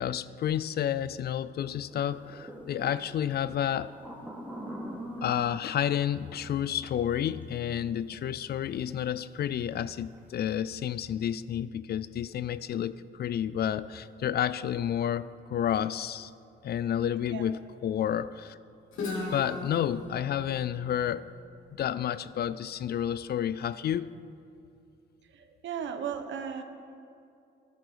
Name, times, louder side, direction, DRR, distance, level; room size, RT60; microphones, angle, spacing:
voice 1, 0.0-3.9 5.2-16.3 16.6-18.6 19.3-21.3 21.8-24.1, left 10 dB, 55° left, 17 dB, 0.4 m, -30 dB
sound 1, 1.9-7.8 8.1-8.2 9.4-9.6 9.9-10.2, right 1 dB, 5° right, 2.5 m, -43 dB
Guitar, 18.9-22.7, left 3 dB, 80° left, 3.0 m, -39 dB
voice 2, 25.3-26.6, right 8 dB, 70° right, 7 dB, 1.1 m, -36 dB
13.0 x 11.0 x 5.0 m, 2.5 s
cardioid pair, 90°, 20 cm